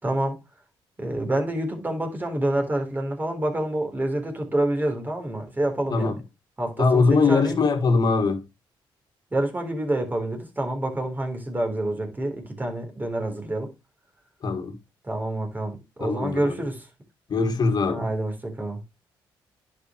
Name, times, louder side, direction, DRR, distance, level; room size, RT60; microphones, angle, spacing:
voice 1, 0.0-0.3 1.0-6.2 6.6-7.6 9.3-13.7 15.0-16.9 17.9-18.8, right 1 dB, 20° right, 3.6 m, -27 dB
voice 2, 6.8-8.4 14.4-14.8 16.0-16.5 17.3-18.1, left 4 dB, 45° left, 1.9 m, -21 dB
11.0 x 5.1 x 3.0 m
cardioid pair, 85°, 9 cm